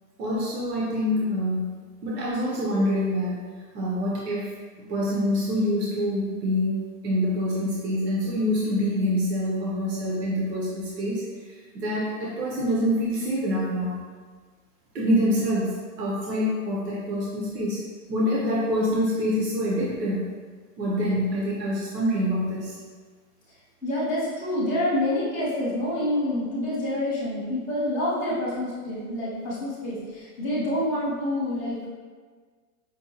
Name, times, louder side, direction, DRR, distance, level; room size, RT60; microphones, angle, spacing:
voice 1, 0.2-1.8 2.0-3.4 3.7-4.5 4.9-11.2 11.7-14.0 14.9-17.8 18.1-20.3 20.8-22.8, equal, 80° right, -5 dB, 1.1 m, -26 dB
voice 2, 23.8-31.9, left 1 dB, 10° right, -15 dB, 0.6 m, -27 dB
5.4 x 2.3 x 2.8 m, 1.5 s
hypercardioid pair, 175°, 48 cm